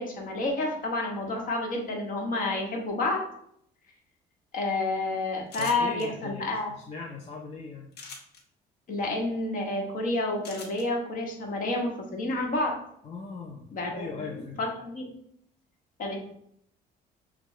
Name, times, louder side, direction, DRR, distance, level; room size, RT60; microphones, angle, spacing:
voice 1, 0.0-3.2 4.5-6.7 8.9-12.8 13.7-14.3 14.6-15.1 16.0-16.2, left 2 dB, 55° left, 1 dB, 1.2 m, -29 dB
sound 1, 5.5-6.1 7.9-8.4 10.4-10.8, left 4 dB, 80° left, 1.0 m, -42 dB
voice 2, 5.6-7.9 13.0-14.6, left 4 dB, 35° left, -1 dB, 0.6 m, -40 dB
6.7 x 2.3 x 3.2 m, 0.69 s
cardioid pair, 110°, 17 cm